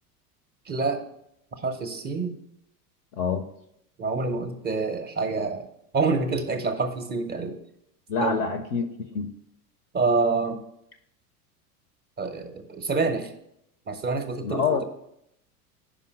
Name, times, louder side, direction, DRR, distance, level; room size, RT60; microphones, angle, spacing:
voice 1, 0.7-1.0 1.6-2.4 4.0-5.7 5.9-7.6 8.2-8.4 9.9-10.6 12.2-13.3 13.9-14.8, right 4 dB, 20° right, 7 dB, 0.7 m, -27 dB
voice 2, 3.1-3.4 8.1-8.9 9.1-9.3 14.4-14.8, left 5 dB, 30° left, 8 dB, 0.4 m, -26 dB
5.4 x 4.9 x 6.2 m, 0.77 s
figure-of-eight pair, 80°, 47 cm